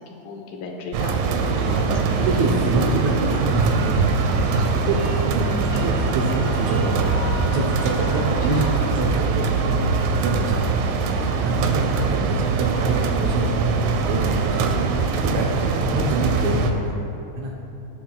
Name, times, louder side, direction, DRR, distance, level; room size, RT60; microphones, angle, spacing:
voice 1, 0.0-1.7 2.5-2.6 11.7-12.2 15.9-16.0, left 4 dB, 85° left, 1 dB, 2.8 m, -36 dB
sound 1, 0.9-16.7, right 5 dB, 90° right, 2.4 m, -23 dB
voice 2, 1.5-1.8 2.2-4.3 4.9-7.2 7.5-9.9 10.2-16.9 17.4-17.5, right 2 dB, 70° right, -2 dB, 1.8 m, -26 dB
sound 2, 1.9-8.8, right 1 dB, 45° right, 1.8 m, -29 dB
17.5 x 8.0 x 2.3 m, 2.8 s
omnidirectional pair, 4.0 m